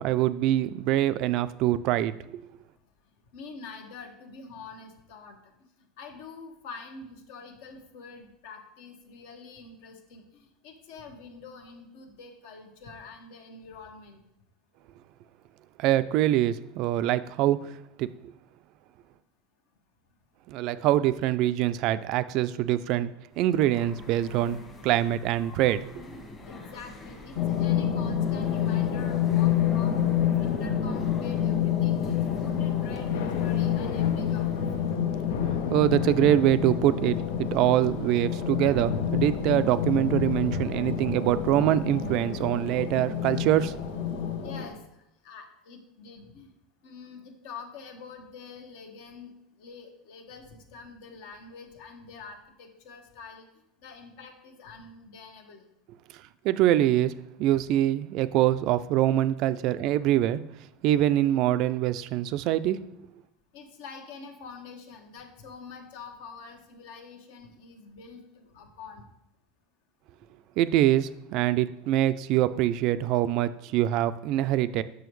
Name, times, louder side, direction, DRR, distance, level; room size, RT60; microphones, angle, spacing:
voice 1, 0.0-2.4 15.8-18.1 20.5-23.1 23.4-24.6 24.8-25.9 35.7-43.7 56.4-57.1 57.4-60.4 60.8-62.8 70.6-74.8, right 13 dB, 50° right, 14 dB, 0.3 m, -24 dB
voice 2, 3.3-5.5 5.8-14.2 26.5-34.9 44.4-44.8 45.2-46.5 46.8-49.3 49.6-53.5 53.8-55.6 63.5-69.0, left 5 dB, 70° left, 5 dB, 1.2 m, -46 dB
sound 1, 23.3-34.9, left 2 dB, 25° left, 1.3 m, -46 dB
sound 2, 27.4-44.7, left 9 dB, 50° left, 0.8 m, -28 dB
Thunder / Rain, 31.9-44.8, left 6 dB, 85° left, 0.6 m, -38 dB
7.0 x 6.2 x 3.1 m, 0.83 s
supercardioid pair, 145°, 0 cm